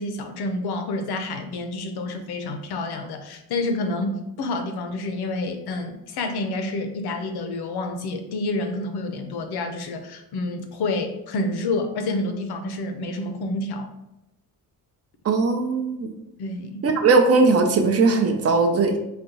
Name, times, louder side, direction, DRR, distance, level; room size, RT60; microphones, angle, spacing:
voice 1, 0.0-13.9 16.4-16.9, left 2 dB, 90° left, 6 dB, 0.7 m, -28 dB
voice 2, 15.2-16.1 16.8-19.0, right 4 dB, 40° right, 4 dB, 0.5 m, -19 dB
4.1 x 2.3 x 3.9 m, 0.90 s
wide cardioid pair, 180°, 37 cm